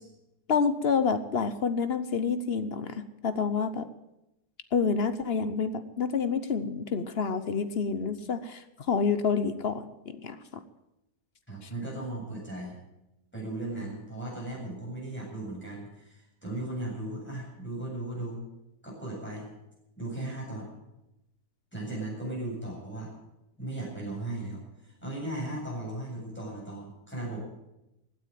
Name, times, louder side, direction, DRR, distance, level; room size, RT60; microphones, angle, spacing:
voice 1, 0.5-3.9 4.7-10.6, left 5 dB, 45° left, 11 dB, 0.9 m, -28 dB
voice 2, 11.5-12.8 13.3-18.4 18.8-19.5 20.0-20.7 21.7-23.1 23.6-27.4, right 1 dB, 5° left, -4 dB, 7.8 m, -37 dB
16.0 x 9.3 x 9.2 m, 0.90 s
omnidirectional pair, 1.8 m